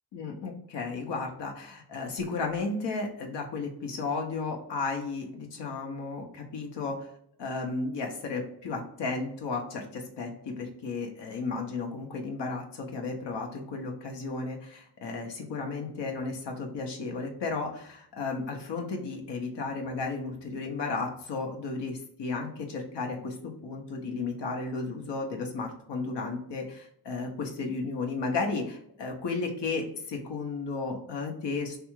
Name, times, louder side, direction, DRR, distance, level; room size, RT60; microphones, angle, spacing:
voice 1, 0.1-7.1 7.4-23.4 23.6-31.8, left 3 dB, 90° left, 2 dB, 0.7 m, -34 dB
3.3 x 2.4 x 3.0 m, 0.67 s
cardioid pair, 60°, 41 cm